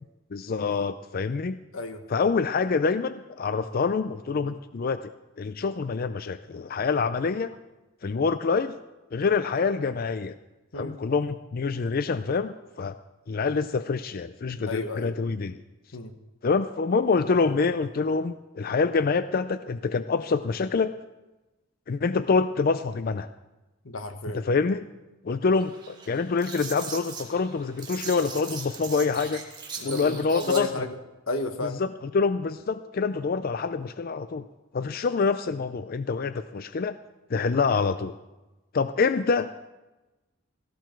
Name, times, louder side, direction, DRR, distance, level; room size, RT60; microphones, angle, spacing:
voice 1, 0.3-1.6 2.1-5.1 5.4-7.5 8.0-8.8 9.1-10.4 10.7-12.9 13.3-15.6 16.4-20.9 21.9-23.3 24.3-24.8 25.2-29.4 29.8-30.7 31.6-34.5 34.7-37.0 37.3-38.1 38.7-39.5, left 4 dB, 50° left, 12 dB, 0.4 m, -26 dB
voice 2, 1.7-2.0 10.7-10.9 14.7-15.1 15.9-16.1 23.8-24.5 29.8-31.0 31.3-31.8, left 3 dB, 90° left, 8 dB, 1.4 m, -31 dB
sound 1, 25.5-30.6, right 5 dB, 20° right, 2.1 m, -40 dB
16.5 x 15.5 x 4.5 m, 1.1 s
head